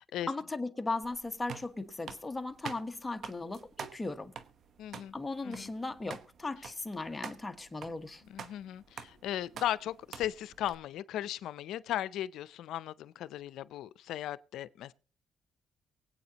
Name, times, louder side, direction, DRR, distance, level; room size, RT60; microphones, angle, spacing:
voice 1, 0.3-4.3 5.1-8.2, left 3 dB, 20° left, 1.2 m, -37 dB
sound 1, 1.0-10.7, right 6 dB, 60° right, 1.0 m, -48 dB
voice 2, 4.8-5.1 5.4-5.7 8.3-14.9, left 12 dB, 85° left, 0.5 m, -37 dB
24.0 x 8.7 x 2.9 m
cardioid pair, 90°, 0 cm